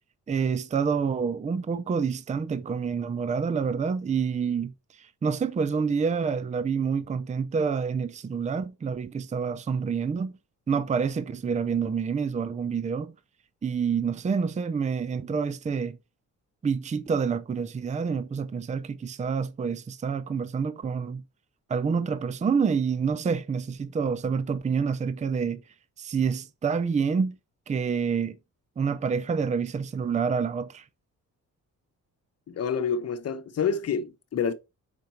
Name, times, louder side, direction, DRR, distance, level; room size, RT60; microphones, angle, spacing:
voice 1, 0.3-10.3 10.7-13.1 13.6-16.0 16.6-21.2 21.7-25.6 26.0-27.4 27.7-28.4 28.8-30.8, right 6 dB, 25° right, 0.5 m, -27 dB
voice 2, 32.5-34.5, left 6 dB, 50° left, 1.0 m, -28 dB
6.7 x 5.3 x 4.5 m
wide cardioid pair, 160°, 32 cm